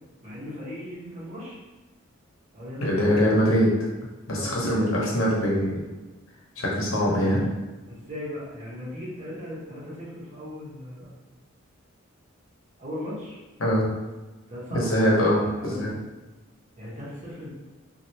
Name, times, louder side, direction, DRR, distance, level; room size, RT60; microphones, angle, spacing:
voice 1, 0.2-1.5 2.5-3.1 4.3-5.0 6.9-7.4 7.9-11.2 12.8-13.4 14.5-15.8 16.8-17.5, left 1 dB, 35° right, -7 dB, 1.1 m, -38 dB
voice 2, 2.8-3.7 4.3-5.8 6.6-7.4 13.6-13.8 14.7-15.9, equal, 90° left, -3 dB, 0.9 m, -22 dB
3.1 x 2.5 x 2.8 m, 1.2 s
head